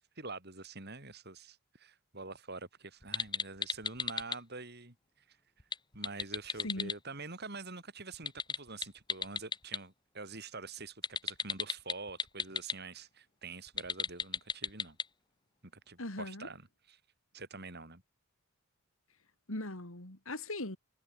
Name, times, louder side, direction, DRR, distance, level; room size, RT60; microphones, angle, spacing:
voice 1, 0.2-4.9 5.3-5.4 5.9-15.0 15.6-17.0 17.3-18.0, right 3 dB, 45° right, 4.4 m, -46 dB
sound 1, 3.0-4.4 5.6-7.0 8.1-9.8 11.0-12.7 13.7-15.1, left 5 dB, 20° left, 1.2 m, -35 dB
voice 2, 16.0-16.5 19.5-20.8, left 1 dB, 65° left, 3.6 m, -39 dB
head